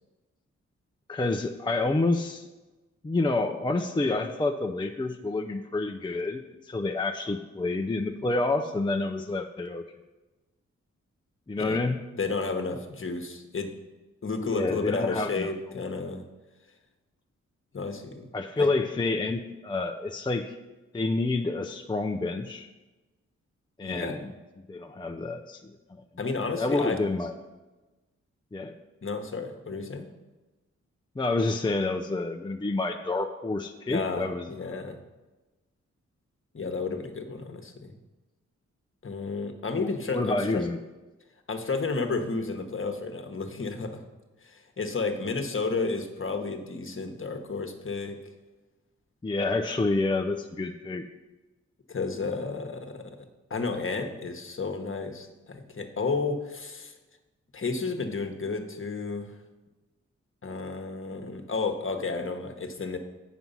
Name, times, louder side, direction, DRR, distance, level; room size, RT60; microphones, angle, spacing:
voice 1, 1.1-2.5 3.0-9.8 11.5-12.0 14.4-15.8 18.3-20.6 20.9-22.7 23.8-24.3 24.7-26.0 26.6-27.3 28.5-28.8 31.2-34.9 39.8-40.8 49.2-51.1, left 2 dB, 15° left, 4 dB, 0.5 m, -28 dB
voice 2, 12.2-13.7 14.2-16.2 17.7-18.2 18.6-18.7 23.8-24.2 26.2-27.0 29.0-30.1 33.9-35.0 36.5-37.9 39.0-40.6 41.5-44.0 44.4-48.2 51.9-53.1 53.5-56.9 57.5-59.3 60.4-63.0, left 4 dB, 45° left, 5 dB, 1.2 m, -32 dB
7.7 x 6.1 x 5.5 m, 1.1 s
cardioid pair, 50°, 29 cm